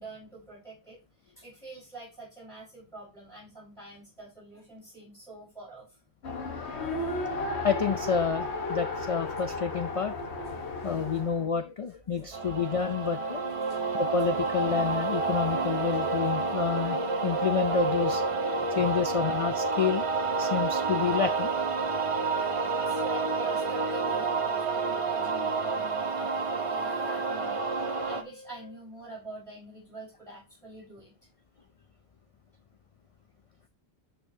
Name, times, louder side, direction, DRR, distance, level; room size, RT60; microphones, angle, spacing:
voice 1, 0.0-6.0 6.7-7.3 13.5-13.9 15.9-16.0 18.5-18.7 22.4-31.1, right 2 dB, 5° left, -6 dB, 4.7 m, -46 dB
Race car auto racing, 6.2-11.5, left 2 dB, 80° left, 1.5 m, -34 dB
voice 2, 7.6-10.1 10.8-13.6 14.0-18.2 18.8-20.0 20.4-21.5 22.4-22.8, left 6 dB, 45° left, 9 dB, 0.5 m, -29 dB
sound 1, 12.3-28.2, right 4 dB, 35° right, 0.8 m, -29 dB
sound 2, 25.4-28.8, right 3 dB, 80° right, 1.6 m, -49 dB
11.0 x 5.7 x 2.7 m, 0.27 s
omnidirectional pair, 1.1 m